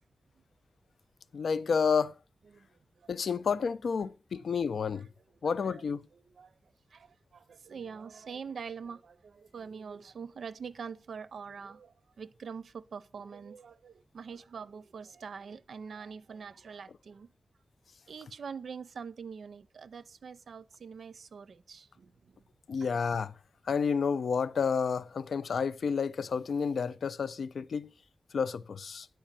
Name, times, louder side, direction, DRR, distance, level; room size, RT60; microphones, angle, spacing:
voice 1, 1.3-2.1 3.1-5.1 5.4-6.1 22.7-23.3 23.7-27.9 28.3-29.1, left 6 dB, 85° left, 0.4 m, -30 dB
voice 2, 2.5-3.1 4.5-4.6 4.9-5.0 5.4-5.8 6.1-6.6 6.9-17.3 18.1-22.5, right 6 dB, 85° right, 0.6 m, -44 dB
10.0 x 4.4 x 7.4 m
wide cardioid pair, 145°, 0 cm